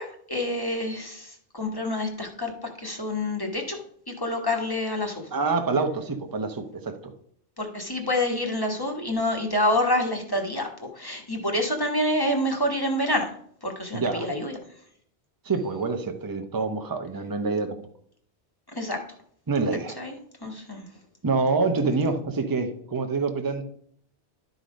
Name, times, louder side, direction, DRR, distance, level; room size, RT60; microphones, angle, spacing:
voice 1, 0.0-2.5 2.8-3.8 4.1-5.2 7.6-10.7 11.0-13.3 13.6-14.6 18.8-19.0 20.0-20.2 20.4-20.8, left 1 dB, 20° left, 2 dB, 1.2 m, -27 dB
voice 2, 5.3-7.1 13.9-14.3 15.4-17.8 19.5-20.0 21.2-23.6, right 4 dB, 20° right, 6 dB, 0.7 m, -26 dB
11.5 x 4.0 x 5.1 m, 0.63 s
omnidirectional pair, 1.2 m